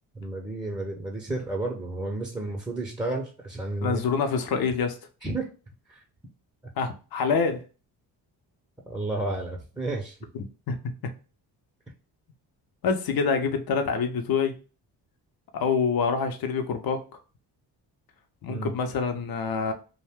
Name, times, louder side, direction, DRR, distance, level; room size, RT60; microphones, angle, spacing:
voice 1, 0.1-4.0 5.2-5.5 5.9-6.0 8.9-10.2 18.5-18.7, right 2 dB, 10° right, 0.6 m, -31 dB
voice 2, 3.8-5.0 6.8-7.6 10.3-10.9 12.8-14.5 15.5-17.2 18.4-19.7, left 5 dB, 55° left, 0.7 m, -26 dB
2.5 x 2.2 x 3.5 m
cardioid pair, 65°, 44 cm